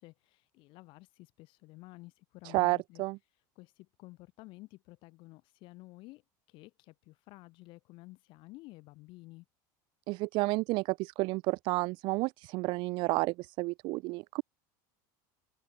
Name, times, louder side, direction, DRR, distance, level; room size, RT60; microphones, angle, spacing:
voice 1, 0.0-3.0 3.3-6.2 6.5-9.4, left 21 dB, 55° left, 2.2 m, -52 dB
voice 2, 2.4-3.2 10.1-14.4, right 23 dB, 50° right, 0.4 m, -31 dB
supercardioid pair, 140°, 10 cm